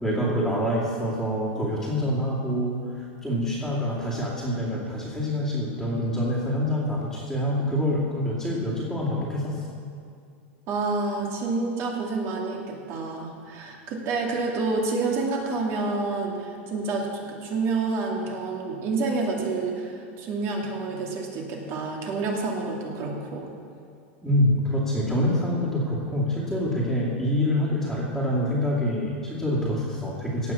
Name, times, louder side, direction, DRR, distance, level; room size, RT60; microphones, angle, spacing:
voice 1, 0.0-9.6 24.2-30.5, equal, ahead, -9 dB, 2.5 m, -26 dB
voice 2, 10.7-23.5, right 3 dB, 40° right, 0 dB, 2.4 m, -28 dB
17.0 x 6.2 x 7.3 m, 2.4 s
supercardioid pair, 140°, 7 cm